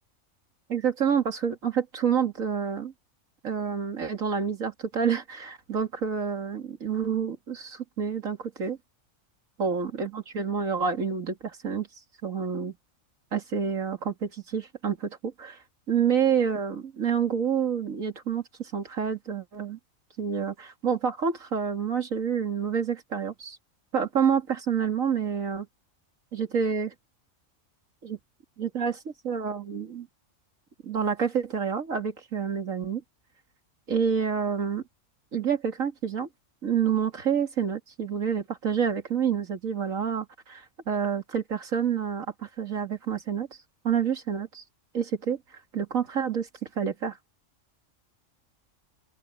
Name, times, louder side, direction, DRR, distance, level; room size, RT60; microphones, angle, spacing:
voice 1, 0.7-2.9 3.4-8.8 9.6-11.9 12.2-12.7 13.3-15.6 15.9-19.8 20.2-23.6 23.9-25.7 26.3-26.9 28.0-28.2 28.6-29.0 29.2-30.1 30.8-33.0 33.9-34.8 35.3-36.3 36.6-43.5 43.8-44.6 44.9-45.4 45.7-46.5 46.8-47.2, right 7 dB, 90° right, 2.7 m, -28 dB
open air
omnidirectional pair, 1.4 m